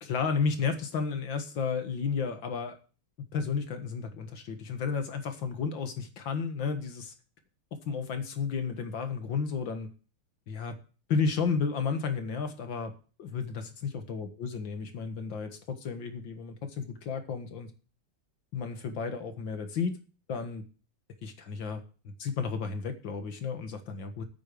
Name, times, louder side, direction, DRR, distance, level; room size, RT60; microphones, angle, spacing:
voice 1, 0.0-2.8 3.3-7.1 7.9-9.9 10.5-10.8 11.1-12.9 13.2-17.7 18.5-20.0 20.3-20.7 21.2-24.2, left 5 dB, 70° left, 7 dB, 2.3 m, -32 dB
9.0 x 8.4 x 6.8 m, 0.37 s
omnidirectional pair, 2.1 m